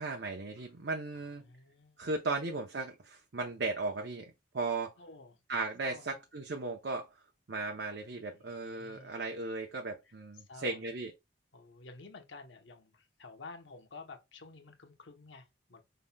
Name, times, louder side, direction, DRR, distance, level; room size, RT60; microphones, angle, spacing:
voice 1, 0.0-1.4 2.0-4.9 5.5-7.1 7.5-11.1, right 3 dB, 65° right, 0.7 m, -36 dB
voice 2, 1.1-2.1 5.0-5.4 5.8-6.1 8.1-9.2 10.0-10.9 11.5-15.8, left 3 dB, 75° left, 0.9 m, -52 dB
5.5 x 3.8 x 2.2 m
head